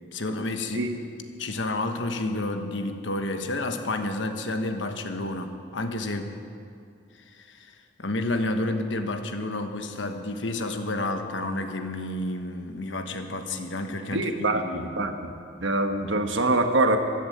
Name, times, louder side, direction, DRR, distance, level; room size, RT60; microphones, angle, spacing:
voice 1, 0.1-0.8 1.4-6.3 7.3-14.9, left 2 dB, 75° left, 6 dB, 1.2 m, -30 dB
voice 2, 14.1-15.3 15.6-17.0, right 2 dB, 85° right, 6 dB, 1.3 m, -24 dB
13.5 x 11.0 x 8.6 m, 2.5 s
head